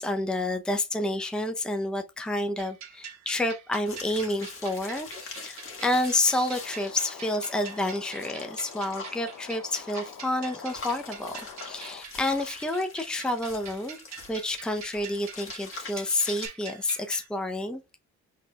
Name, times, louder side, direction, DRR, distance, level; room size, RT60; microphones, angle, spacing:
voice 1, 0.0-17.8, left 1 dB, 5° left, 0.7 m, -29 dB
sound 1, 2.6-17.3, right 7 dB, 65° right, 1.4 m, -45 dB
sound 2, 3.9-16.5, left 3 dB, 45° left, 1.7 m, -44 dB
sound 3, 6.5-12.0, left 7 dB, 75° left, 0.7 m, -46 dB
4.8 x 3.9 x 2.3 m
cardioid pair, 90°, 30 cm